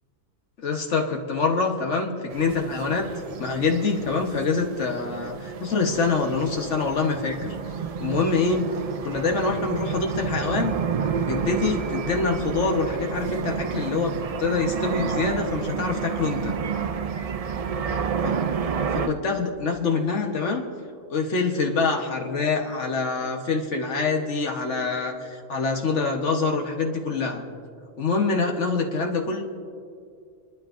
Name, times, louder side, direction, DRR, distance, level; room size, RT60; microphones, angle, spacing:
voice 1, 0.6-3.1 3.4-7.5 8.0-16.5 18.9-20.6 21.1-27.5 28.0-29.4, left 4 dB, 80° left, 2 dB, 1.5 m, -25 dB
sound 1, 2.3-19.1, right 6 dB, 55° right, 0.4 m, -30 dB
26.5 x 12.0 x 2.6 m, 2.3 s
omnidirectional pair, 1.2 m